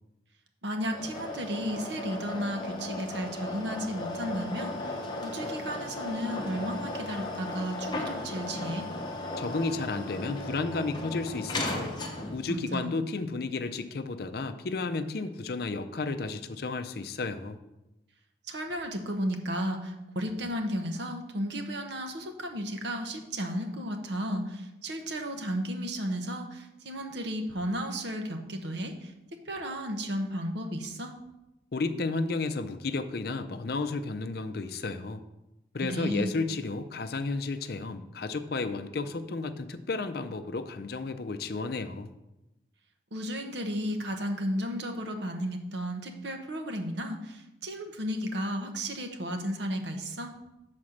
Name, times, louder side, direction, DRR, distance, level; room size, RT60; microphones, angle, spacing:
voice 1, 0.6-8.9 12.5-12.9 18.5-29.1 29.5-31.1 35.9-36.3 43.1-50.3, equal, 70° right, 5 dB, 0.9 m, -34 dB
sound 1, 0.8-12.5, left 2 dB, 25° left, 0.9 m, -36 dB
voice 2, 9.4-11.9 12.3-17.6 31.7-35.2 35.7-42.1, left 3 dB, 55° left, 9 dB, 0.5 m, -32 dB
7.2 x 4.2 x 6.4 m, 0.95 s
head